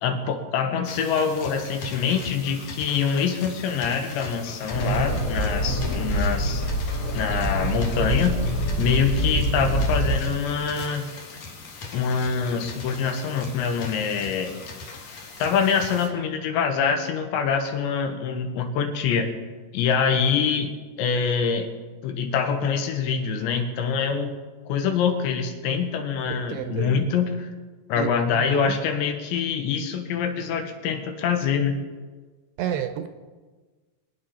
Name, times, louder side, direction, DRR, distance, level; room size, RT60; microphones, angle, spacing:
voice 1, 0.0-6.6 7.1-11.1 11.9-14.5 15.4-19.3 19.7-20.7 21.0-21.7 22.0-24.3 24.7-27.5 27.9-31.7, left 6 dB, 85° left, 5 dB, 3.5 m, -25 dB
sound 1, 0.8-16.1, left 3 dB, 65° left, 1.7 m, -40 dB
sound 2, 4.7-10.2, right 1 dB, 25° left, 2.2 m, -25 dB
voice 2, 26.3-27.0 28.0-28.1 28.5-28.7 32.6-33.1, right 9 dB, 75° right, 8 dB, 2.7 m, -30 dB
24.0 x 9.1 x 4.3 m, 1.4 s
omnidirectional pair, 5.1 m